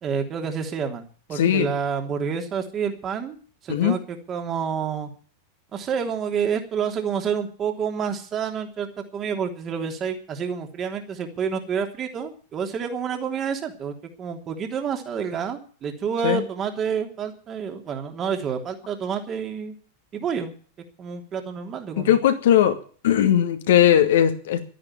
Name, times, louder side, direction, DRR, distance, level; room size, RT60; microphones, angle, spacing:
voice 1, 0.0-3.4 3.6-5.1 5.7-8.9 9.1-19.7 20.1-20.5 21.0-22.2, right 7 dB, 30° right, 5 dB, 3.3 m, -28 dB
voice 2, 1.3-1.7 3.7-4.0 16.2-16.4 22.0-22.8 23.0-24.7, left 10 dB, 55° left, 7 dB, 2.4 m, -19 dB
13.0 x 10.5 x 9.1 m, 0.41 s
figure-of-eight pair, 90°, 0 cm